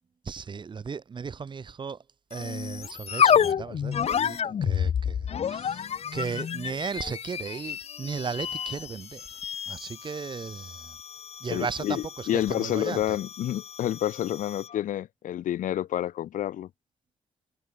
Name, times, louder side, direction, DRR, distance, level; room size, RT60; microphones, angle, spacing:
voice 1, 0.2-2.0 2.3-9.4 9.7-11.0 11.4-13.2, right 5 dB, 35° right, 1.7 m, -36 dB
sound 1, 2.3-14.8, left 8 dB, 50° left, 1.9 m, -30 dB
voice 2, 11.5-16.7, left 12 dB, 80° left, 2.7 m, -29 dB
cardioid pair, 115°, 13 cm